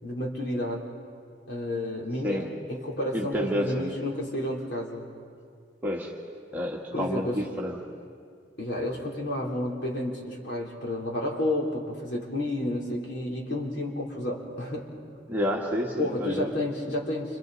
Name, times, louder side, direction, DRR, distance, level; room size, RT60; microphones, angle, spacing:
voice 1, 0.0-0.8 1.5-5.1 6.9-7.4 8.6-14.9 16.0-17.4, left 1 dB, 60° left, -1 dB, 3.4 m, -31 dB
voice 2, 3.1-3.9 5.8-6.1 6.5-7.8 15.3-16.6, equal, 10° right, -3 dB, 1.6 m, -29 dB
29.5 x 26.5 x 4.0 m, 2.2 s
head